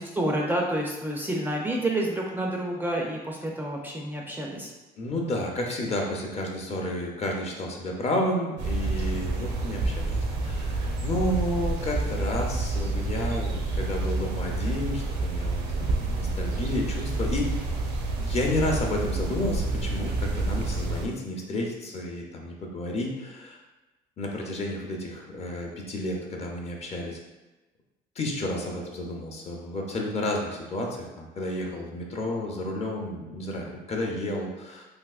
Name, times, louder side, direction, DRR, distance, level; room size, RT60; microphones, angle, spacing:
voice 1, 0.2-4.7, right 1 dB, 10° right, -1 dB, 0.4 m, -29 dB
voice 2, 5.0-10.2 10.4-17.5 18.2-23.6 24.2-27.2 28.2-34.9, left 1 dB, 40° left, 0 dB, 0.6 m, -31 dB
sound 1, 8.6-21.1, right 2 dB, 80° right, 0.6 m, -28 dB
3.4 x 2.8 x 2.4 m, 1.1 s
cardioid pair, 110°, 17 cm